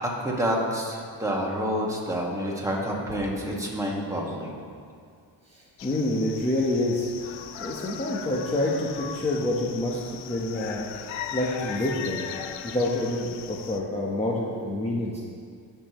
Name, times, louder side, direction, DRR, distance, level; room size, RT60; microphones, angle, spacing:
voice 1, 0.0-4.6, equal, 5° right, -3 dB, 1.8 m, -28 dB
voice 2, 5.5-7.1 7.6-10.9 11.3-12.3 12.6-15.2, left 1 dB, 15° left, -5 dB, 1.1 m, -27 dB
sound 1, 5.8-13.8, left 9 dB, 90° left, 0.7 m, -38 dB
18.0 x 7.0 x 3.1 m, 2.2 s
cardioid pair, 115°, 45 cm